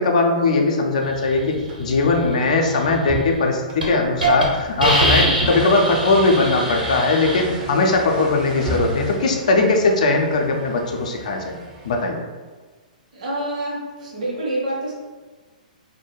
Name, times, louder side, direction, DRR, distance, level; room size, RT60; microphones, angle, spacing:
voice 1, 0.0-11.4 11.8-12.2, left 3 dB, 55° left, 2 dB, 0.4 m, -19 dB
sound 1, 1.0-12.0, right 2 dB, 25° right, 0.5 m, -32 dB
Hiss, 3.2-3.4 3.8-3.9 4.2-4.4 4.8-7.4, right 1 dB, 85° right, 1.0 m, -23 dB
voice 2, 13.1-14.9, right 1 dB, 55° right, -5 dB, 0.8 m, -27 dB
2.2 x 2.1 x 3.0 m, 1.3 s
figure-of-eight pair, 115°, 5 cm